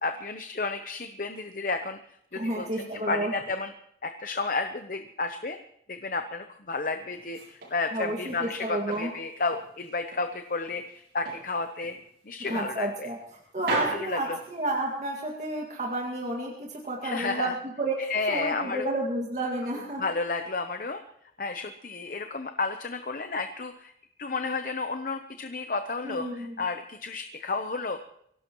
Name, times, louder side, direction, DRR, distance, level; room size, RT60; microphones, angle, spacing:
voice 1, 0.0-2.0 2.3-3.7 4.0-5.6 5.9-12.0 12.2-13.1 13.9-14.4 17.0-17.6 18.0-18.9 20.0-21.0 21.4-23.9 24.2-28.0, left 3 dB, 50° left, 7 dB, 0.8 m, -32 dB
voice 2, 2.4-3.3 7.9-9.1 12.5-13.2 13.5-20.1 26.0-26.5, right 1 dB, 45° right, -2 dB, 2.1 m, -31 dB
sound 1, 7.1-8.5 8.9-10.3 10.7-11.5 11.8-12.0 12.5-13.3 13.6-15.0, right 2 dB, 70° right, 7.1 m, -37 dB
23.5 x 17.0 x 3.1 m, 0.72 s
head